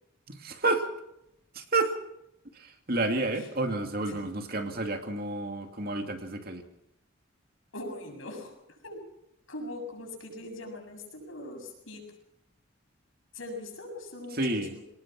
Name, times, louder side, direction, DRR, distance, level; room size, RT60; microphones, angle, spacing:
voice 1, 0.3-0.9 1.6-1.9 2.9-6.6 14.3-14.7, right 2 dB, 50° right, 5 dB, 2.5 m, -30 dB
voice 2, 7.7-8.5 8.8-9.0 9.5-12.0 13.3-14.4 14.7-14.8, left 1 dB, 85° left, 3 dB, 7.4 m, -41 dB
25.0 x 19.5 x 6.0 m, 0.82 s
head